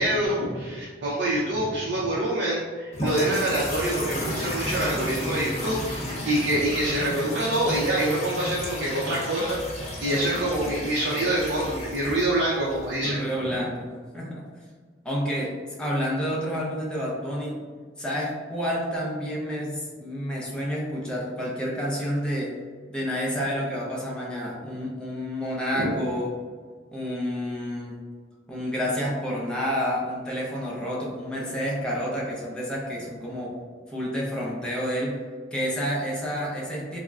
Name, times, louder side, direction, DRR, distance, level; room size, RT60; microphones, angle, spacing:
voice 1, 0.0-9.6 10.0-13.2 25.7-25.9, right 1 dB, 65° right, -5 dB, 0.5 m, -26 dB
sound 1, 2.9-13.1, equal, 35° left, 0.8 m, -33 dB
voice 2, 13.0-14.4 15.0-17.6 18.0-22.6 22.9-26.4 26.9-28.0 28.5-33.6 33.9-35.2 35.5-37.0, equal, 5° left, -5 dB, 0.6 m, -29 dB
3.6 x 2.0 x 2.3 m, 1.5 s
head